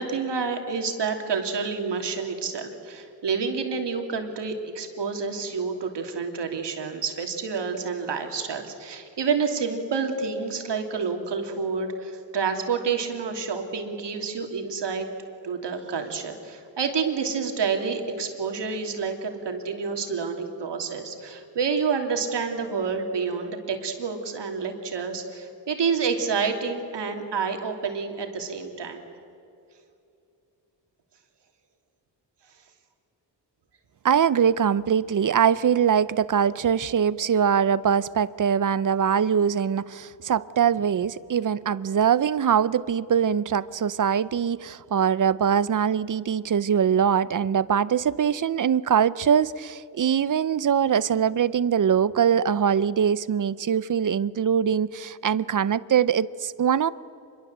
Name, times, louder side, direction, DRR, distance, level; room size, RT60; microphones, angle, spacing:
voice 1, 0.0-15.1 15.4-29.0, right 5 dB, 65° right, 4 dB, 3.0 m, -28 dB
voice 2, 34.0-56.9, right 8 dB, 45° right, 18 dB, 0.7 m, -22 dB
26.0 x 22.0 x 8.0 m, 2.6 s
wide cardioid pair, 110°, 45 cm